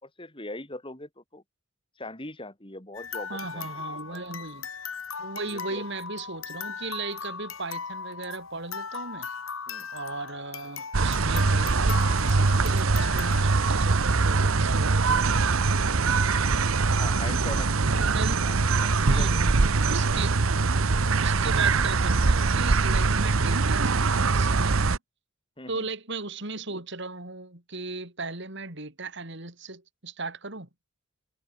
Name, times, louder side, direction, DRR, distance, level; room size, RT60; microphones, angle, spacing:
voice 1, 0.0-1.4 2.0-4.2 5.5-5.8 9.7-9.9 16.9-18.1 18.4-18.5 18.8-19.7 25.6-25.9, left 2 dB, 25° left, 4.2 m, -41 dB
sound 1, 2.9-13.4, left 6 dB, 80° left, 4.5 m, -38 dB
voice 2, 3.3-4.7 5.2-9.3 9.9-16.3 18.0-18.5 19.0-20.4 21.2-25.0 25.7-30.7, right 3 dB, 60° right, 4.1 m, -37 dB
sound 2, 10.9-25.0, right 4 dB, 80° right, 1.0 m, -23 dB
head